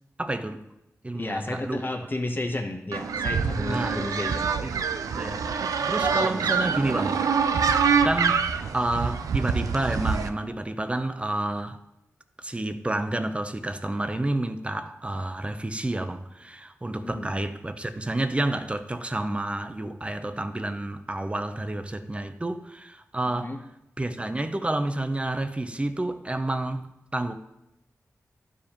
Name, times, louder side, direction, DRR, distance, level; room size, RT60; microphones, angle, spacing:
voice 1, 0.2-0.7 1.0-1.9 3.7-4.1 4.6-7.2 8.0-11.8 12.4-23.6 24.0-27.3, right 1 dB, 20° right, 0.6 m, -30 dB
voice 2, 1.1-4.5 6.2-6.5 17.0-17.3 23.4-23.6, left 2 dB, 35° left, 0.9 m, -32 dB
sound 1, 2.9-10.3, right 6 dB, 90° right, 0.4 m, -25 dB
11.5 x 4.8 x 2.9 m
cardioid pair, 45°, 6 cm